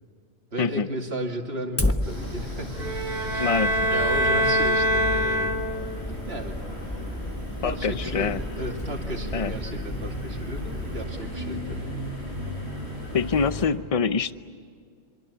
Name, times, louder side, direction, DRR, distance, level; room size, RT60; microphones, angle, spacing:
voice 1, 0.5-3.0 3.3-3.5 3.9-5.5 6.2-6.6 7.0-7.2 7.4-11.9, right 1 dB, 65° right, 2 dB, 2.9 m, -34 dB
Fire, 1.8-11.0, left 1 dB, 15° left, 1.2 m, -34 dB
sound 1, 2.0-13.7, left 1 dB, 70° left, 8.2 m, -35 dB
sound 2, 2.8-6.0, equal, 40° right, 3.6 m, -24 dB
voice 2, 3.4-3.9 7.6-8.4 9.3-9.5 13.1-14.3, left 5 dB, 35° left, 13 dB, 0.7 m, -25 dB
27.5 x 23.5 x 8.4 m, 2.1 s
omnidirectional pair, 1.1 m